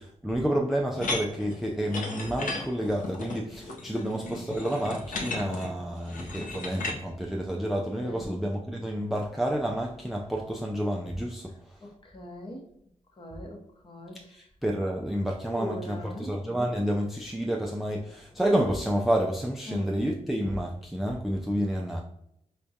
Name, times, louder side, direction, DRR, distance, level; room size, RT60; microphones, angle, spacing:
voice 1, 0.0-11.5 14.3-22.0, equal, ahead, 0 dB, 0.3 m, -29 dB
sound 1, 1.0-7.0, left 3 dB, 80° left, 0.7 m, -35 dB
voice 2, 3.9-4.6 8.0-8.4 11.8-12.6 13.2-14.3 15.5-16.3 19.7-19.9, left 1 dB, 40° left, 1 dB, 0.8 m, -40 dB
4.6 x 2.2 x 2.6 m, 0.76 s
wide cardioid pair, 90°, 13 cm